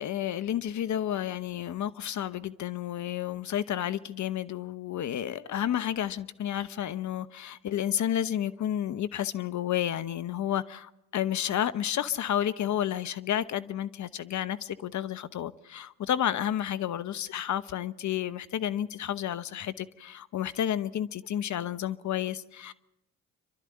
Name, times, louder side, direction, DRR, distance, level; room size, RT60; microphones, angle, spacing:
voice 1, 0.0-22.7, left 11 dB, 55° left, 1.0 m, -31 dB
27.5 x 12.5 x 9.7 m
hypercardioid pair, 55°, 35 cm